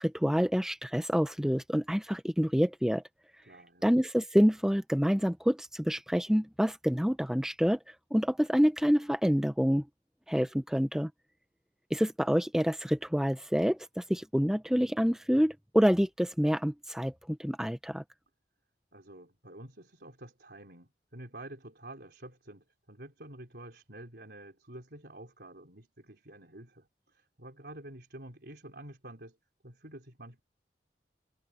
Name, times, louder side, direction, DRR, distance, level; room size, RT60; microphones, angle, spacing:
voice 1, 0.0-3.0 3.8-7.8 8.1-9.8 10.3-11.1 11.9-18.0, equal, 5° right, 0.9 m, -27 dB
voice 2, 3.4-3.9 18.9-29.4 29.6-30.4, right 1 dB, 65° right, 4.4 m, -49 dB
head